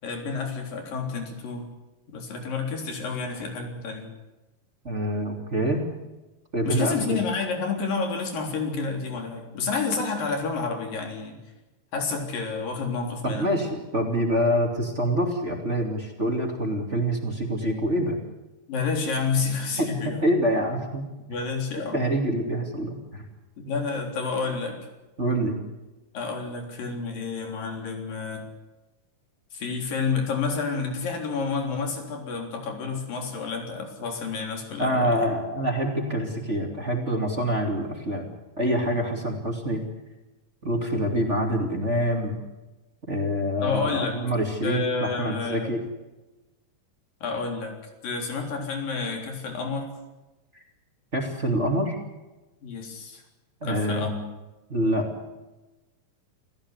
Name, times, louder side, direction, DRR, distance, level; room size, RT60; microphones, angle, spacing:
voice 1, 0.0-1.7 2.1-4.1 6.7-11.4 11.9-13.5 18.7-20.2 21.3-22.0 23.6-24.8 26.1-28.4 29.5-35.3 43.6-44.2 44.6-45.7 47.2-47.7 48.0-49.9 52.6-53.2 53.6-54.2, left 4 dB, 90° left, 2 dB, 5.4 m, -29 dB
voice 2, 4.8-5.9 6.5-7.2 13.2-18.2 19.8-21.1 21.9-23.3 25.2-25.6 34.8-38.3 38.6-39.8 40.6-42.4 43.1-45.8 51.1-52.0 53.6-54.1 54.7-55.1, equal, 20° right, 2 dB, 2.7 m, -26 dB
28.0 x 16.0 x 8.3 m, 1.1 s
omnidirectional pair, 3.9 m